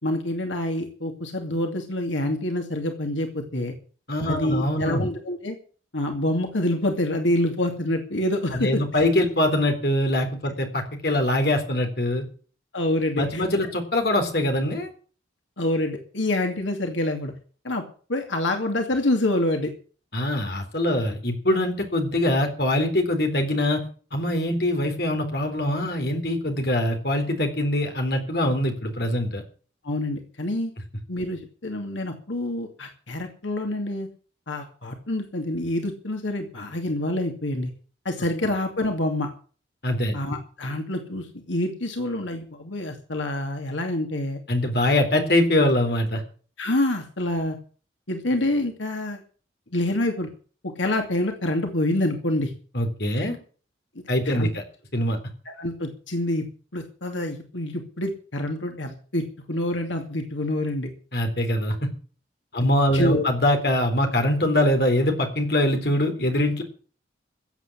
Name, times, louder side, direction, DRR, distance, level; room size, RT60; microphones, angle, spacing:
voice 1, 0.0-3.7 4.3-5.6 5.9-9.1 12.7-13.4 15.6-17.3 17.6-17.8 18.1-19.7 29.8-30.7 31.1-34.1 34.5-37.7 38.0-39.3 40.1-44.4 46.6-47.6 48.1-49.2 49.7-50.3 50.8-52.5 54.3-54.5 55.5-56.4 56.7-59.2 59.5-60.9 62.6-63.2, left 1 dB, 85° left, 4 dB, 2.5 m, -27 dB
voice 2, 4.1-5.1 8.5-12.2 13.2-14.9 20.1-23.8 24.1-29.4 39.8-40.2 44.5-46.2 52.7-53.4 54.1-54.6 54.9-55.2 61.1-61.9 62.5-66.6, left 1 dB, 55° left, 5 dB, 3.8 m, -23 dB
16.0 x 8.1 x 8.6 m, 0.41 s
head